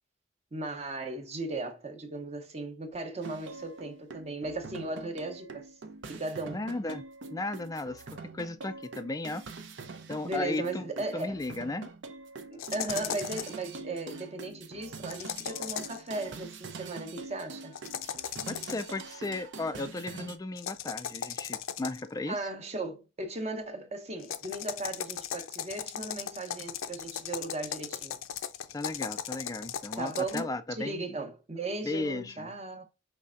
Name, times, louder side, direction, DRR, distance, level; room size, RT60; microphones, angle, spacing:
voice 1, 0.5-5.7 6.1-6.6 10.2-11.4 12.5-17.8 22.3-28.2 30.0-32.8, right 2 dB, 30° right, 0.8 m, -37 dB
sound 1, 3.2-20.4, right 4 dB, 65° right, 0.6 m, -44 dB
voice 2, 6.5-7.0 7.3-8.0 8.3-9.4 10.1-10.8 11.1-11.9 18.5-22.4 28.7-31.1 31.8-32.5, left 2 dB, 20° left, 0.3 m, -35 dB
sound 2, 12.6-13.6 15.1-16.1 17.7-19.0 20.6-22.1 24.2-30.4, left 9 dB, 90° left, 0.5 m, -37 dB
5.3 x 3.2 x 2.5 m
head